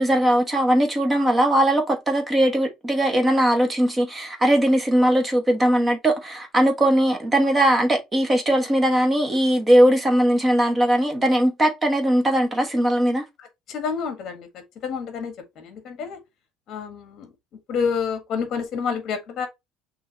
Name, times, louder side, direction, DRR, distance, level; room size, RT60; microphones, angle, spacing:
voice 1, 0.0-13.2, right 1 dB, 15° right, 1.2 m, -19 dB
voice 2, 13.7-14.5 14.8-16.2 16.7-17.3 17.7-19.5, left 6 dB, 45° left, 1.6 m, -28 dB
6.2 x 2.8 x 3.0 m
cardioid pair, 155°, 0 cm